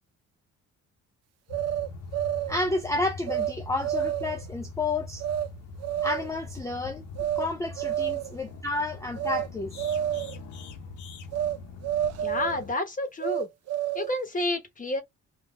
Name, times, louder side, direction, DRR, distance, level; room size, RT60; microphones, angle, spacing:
sound 1, 1.5-12.7, left 3 dB, 70° left, 0.9 m, -42 dB
sound 2, 1.5-2.6 3.3-3.5 3.8-4.4 5.2-5.5 5.8-6.4 7.2-7.5 7.8-8.4 9.2-9.5 9.8-10.4 11.3-11.6 11.8-12.6 13.2-14.2, right 11 dB, 60° right, 0.4 m, -29 dB
voice 1, 2.5-5.2 6.0-7.0 7.4-9.7, left 2 dB, 10° left, 0.4 m, -30 dB
voice 2, 12.2-13.5 13.9-15.0, left 2 dB, 25° left, 1.0 m, -30 dB
3.6 x 2.4 x 2.4 m
cardioid pair, 140°, 30 cm